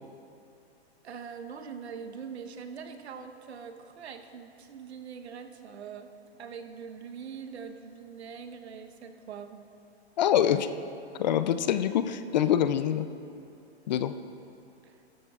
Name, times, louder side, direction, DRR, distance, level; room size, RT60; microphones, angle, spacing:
voice 1, 1.0-6.1 6.4-9.6 14.8-15.0, right 6 dB, 75° right, 6 dB, 1.1 m, -43 dB
voice 2, 10.2-10.7 11.2-13.1 13.9-14.1, left 10 dB, 40° left, 12 dB, 0.4 m, -25 dB
17.5 x 13.0 x 2.4 m, 2.6 s
hypercardioid pair, 140°, 33 cm